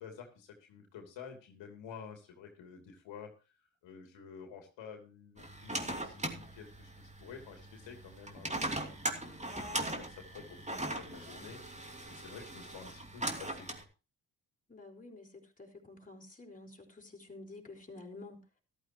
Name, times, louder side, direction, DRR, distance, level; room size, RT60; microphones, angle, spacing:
voice 1, 0.0-3.5 3.8-13.9, left 6 dB, 80° left, 4 dB, 2.9 m, -51 dB
sound 1, 5.4-13.8, right 1 dB, 15° right, 2.8 m, -40 dB
voice 2, 9.2-9.8 14.7-18.5, left 2 dB, 20° left, 0 dB, 4.6 m, -51 dB
13.5 x 12.5 x 3.0 m, 0.30 s
supercardioid pair, 65°, 44 cm